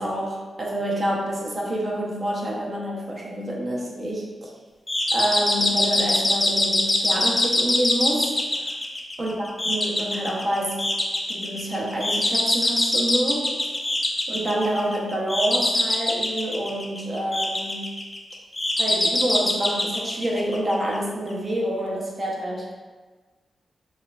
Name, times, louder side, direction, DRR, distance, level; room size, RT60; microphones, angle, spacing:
voice 1, 0.0-4.5 5.1-8.5 9.2-10.9 11.3-13.5 14.3-18.0 18.8-22.7, right 1 dB, 45° right, -3 dB, 0.8 m, -27 dB
sound 1, 4.9-21.0, left 1 dB, 25° left, 0.4 m, -24 dB
4.1 x 2.4 x 2.3 m, 1.3 s
cardioid pair, 85°, 0 cm